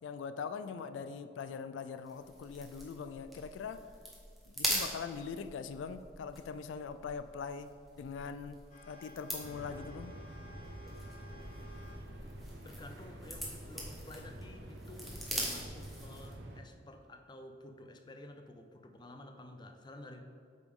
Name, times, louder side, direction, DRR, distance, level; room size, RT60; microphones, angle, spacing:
voice 1, 0.0-3.9 4.5-7.7 8.0-10.1, left 6 dB, 90° left, 11 dB, 0.3 m, -42 dB
sound 1, 2.0-16.4, equal, ahead, 1.0 m, -43 dB
sound 2, 8.7-12.0 12.3-12.4 13.2-13.4 15.7-15.8 16.4-16.5, left 1 dB, 45° left, 1.0 m, -56 dB
sound 3, 9.4-16.6, right 1 dB, 75° right, 0.8 m, -48 dB
voice 2, 12.6-20.2, left 1 dB, 25° left, 5 dB, 0.4 m, -51 dB
7.9 x 5.2 x 3.6 m, 2.2 s
head